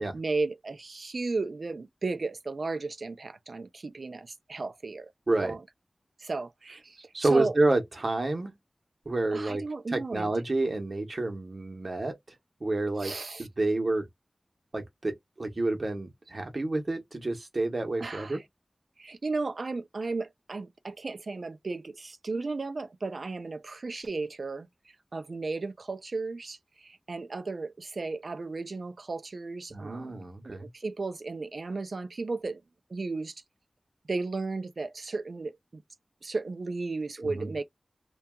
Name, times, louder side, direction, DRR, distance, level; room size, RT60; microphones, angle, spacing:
voice 1, 0.0-5.1 5.4-5.6 6.2-7.5 9.3-10.3 13.0-13.5 18.0-18.4 19.0-32.6 32.9-33.4 34.1-35.8 36.2-37.6, right 3 dB, 80° right, 0.4 m, -35 dB
voice 2, 7.1-8.5 9.1-9.6 9.9-12.2 12.6-13.1 13.4-14.1 14.7-18.4 29.7-30.7 37.2-37.5, right 2 dB, 60° right, 0.8 m, -29 dB
2.7 x 2.2 x 2.2 m
wide cardioid pair, 65°, 0 cm